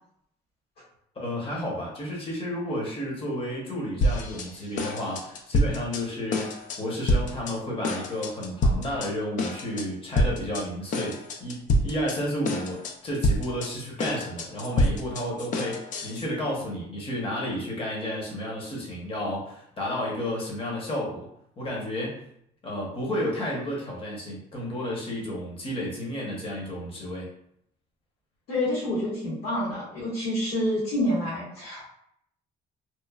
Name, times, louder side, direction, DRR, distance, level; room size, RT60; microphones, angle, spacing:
voice 1, 1.2-21.3 21.6-22.2 22.6-27.3, equal, 35° left, -3 dB, 0.9 m, -32 dB
sound 1, 4.0-4.5 4.8-6.0 6.3-6.8 7.1-7.5 7.8-9.1 9.4-9.8 10.2-10.6 10.9-12.2 12.4-12.9 13.2-16.2, left 1 dB, 50° left, 0.4 m, -26 dB
voice 2, 28.5-31.9, left 1 dB, 70° left, -9 dB, 1.2 m, -28 dB
3.0 x 2.1 x 2.3 m, 0.72 s
cardioid pair, 110°, 17 cm